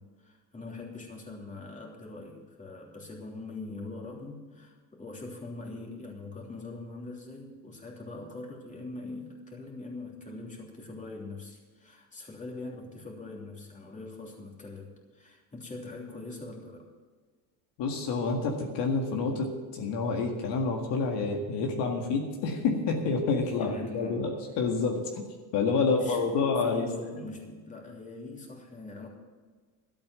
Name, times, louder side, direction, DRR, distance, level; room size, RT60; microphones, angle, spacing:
voice 1, 0.0-16.9 23.4-24.3 25.8-29.1, left 2 dB, 15° left, -1 dB, 3.1 m, -42 dB
voice 2, 17.8-25.2 25.5-26.9, left 4 dB, 65° left, 1 dB, 2.0 m, -28 dB
12.5 x 8.7 x 7.8 m, 1.5 s
cardioid pair, 110°, 44 cm